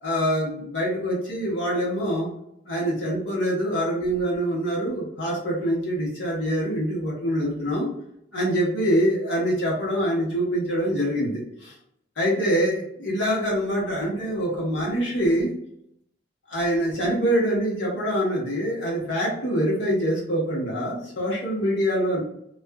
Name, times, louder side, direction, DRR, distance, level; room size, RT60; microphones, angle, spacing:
voice 1, 0.0-2.3 2.7-7.9 8.3-11.7 12.2-15.5 16.5-22.2, equal, 85° left, -5 dB, 1.1 m, -25 dB
2.5 x 2.4 x 2.2 m, 0.75 s
head